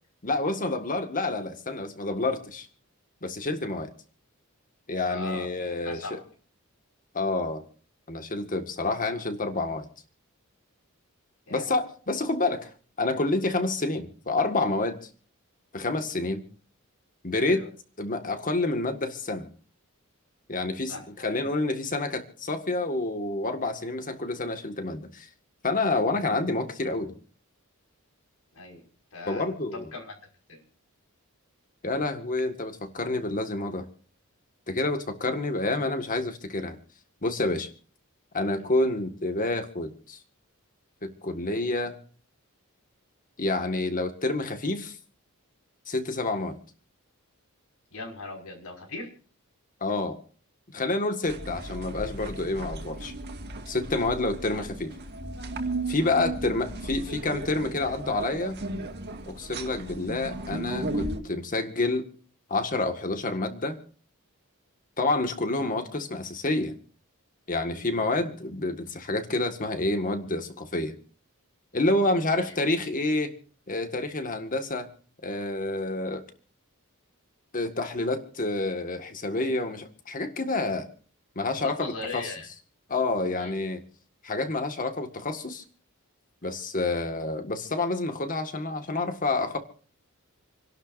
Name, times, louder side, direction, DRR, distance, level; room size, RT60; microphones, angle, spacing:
voice 1, 0.2-2.7 3.2-3.9 4.9-6.2 7.1-7.6 8.1-9.9 11.5-12.7 13.0-15.0 15.7-16.4 17.2-17.6 18.0-19.5 20.5-25.3 25.6-27.1 29.3-29.9 31.8-33.9 34.7-36.8 37.2-37.7 38.3-40.2 41.0-41.9 43.4-45.0 45.9-46.6 49.8-50.2 50.7-53.1 53.7-54.9 55.9-58.6 59.3-62.1 62.5-63.8 65.0-66.8 67.5-71.0 71.7-73.3 73.7-74.9 75.2-76.2 77.5-80.9 81.4-82.3 82.9-83.8 84.2-85.6 86.4-89.6, left 2 dB, 40° left, 7 dB, 1.9 m, -28 dB
voice 2, 5.0-5.5 5.8-6.2 8.9-9.0 11.5-11.7 17.4-17.7 20.9-21.3 28.5-28.8 29.1-29.4 29.7-30.1 30.5-30.6 38.6-38.8 47.9-49.1 54.5-54.6 67.7-67.9 72.4-72.5 81.6-82.5 83.4-83.6, left 3 dB, 75° left, 1 dB, 5.9 m, -39 dB
sound 1, 51.3-61.2, right 2 dB, 50° right, 2.1 m, -35 dB
28.5 x 11.5 x 2.7 m, 0.43 s
head